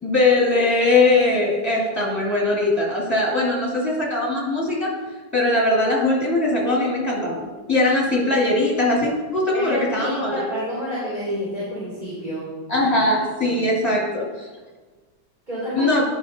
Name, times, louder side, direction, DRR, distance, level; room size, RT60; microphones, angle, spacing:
voice 1, 0.0-4.9 5.3-10.4 12.7-14.5 15.8-16.0, left 2 dB, 10° left, -5 dB, 2.1 m, -20 dB
voice 2, 9.5-12.9 13.1-13.6 15.5-16.0, equal, 25° right, -10 dB, 2.9 m, -29 dB
11.5 x 5.7 x 2.7 m, 1.3 s
omnidirectional pair, 1.9 m